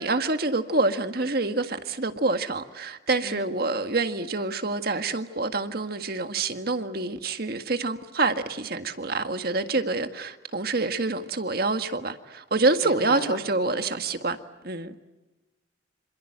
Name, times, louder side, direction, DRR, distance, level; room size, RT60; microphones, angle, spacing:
voice 1, 0.0-14.4 14.6-14.9, right 3 dB, 55° right, 1.8 m, -27 dB
voice 2, 12.8-13.4, left 3 dB, 60° left, 2.8 m, -35 dB
27.5 x 27.0 x 8.0 m
head